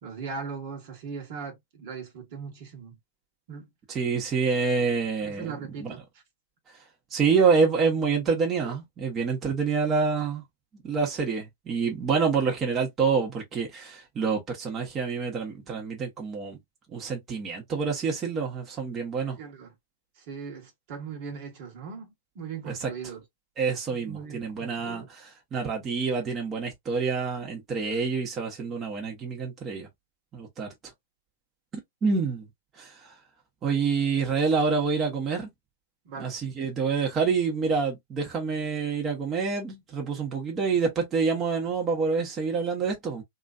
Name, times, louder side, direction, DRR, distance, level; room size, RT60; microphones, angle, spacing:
voice 1, 0.0-3.0 3.5-3.7 5.2-6.0 19.2-19.7 20.2-23.2 23.9-25.1 36.0-36.4, right 5 dB, 55° right, 1.3 m, -39 dB
voice 2, 3.9-5.5 5.8-5.9 7.1-10.4 10.8-16.6 16.9-19.4 22.7-22.9 23.6-29.9 30.3-30.7 32.0-32.5 32.8-33.1 33.6-35.5 36.2-43.2, right 5 dB, 25° right, 1.1 m, -27 dB
3.0 x 2.6 x 2.4 m
hypercardioid pair, 115°, 0 cm